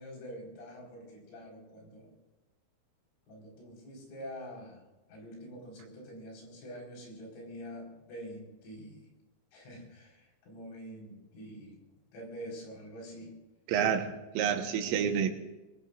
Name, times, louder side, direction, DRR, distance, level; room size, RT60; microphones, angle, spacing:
voice 1, 0.0-2.1 3.3-4.8 5.1-9.1 9.5-11.8 12.1-13.3, equal, 75° left, -2 dB, 7.3 m, -46 dB
voice 2, 13.7-15.3, right 8 dB, 85° right, 4 dB, 3.9 m, -29 dB
25.0 x 20.5 x 2.6 m, 1.1 s
omnidirectional pair, 5.7 m